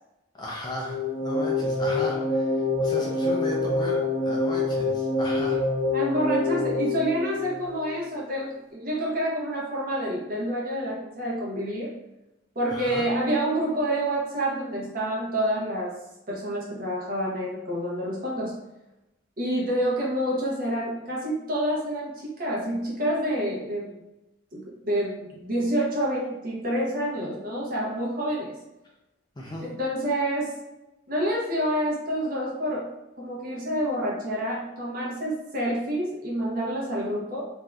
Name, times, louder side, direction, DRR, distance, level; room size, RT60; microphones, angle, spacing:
voice 1, 0.3-1.0 1.2-5.6 12.7-13.1 29.4-29.7, left 1 dB, 20° left, -3 dB, 0.4 m, -35 dB
sound 1, 0.8-8.0, left 2 dB, 75° left, 0.8 m, -26 dB
voice 2, 5.9-11.9 12.5-16.0 16.3-18.5 19.4-24.0 24.5-28.5 29.6-30.5 31.1-32.9 33.2-37.4, right 1 dB, 45° right, -4 dB, 0.8 m, -28 dB
3.3 x 2.6 x 2.3 m, 0.94 s
head